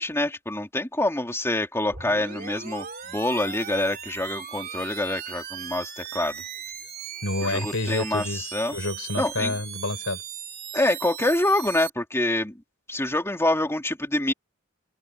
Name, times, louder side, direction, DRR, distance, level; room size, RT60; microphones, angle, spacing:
voice 1, 0.0-6.4 7.4-8.8 9.2-9.5 10.7-12.6 12.9-14.3, left 1 dB, 15° left, 3.3 m, -26 dB
sound 1, 1.9-11.9, right 8 dB, 45° right, 3.4 m, -38 dB
voice 2, 7.2-10.2, left 2 dB, 70° left, 4.9 m, -29 dB
head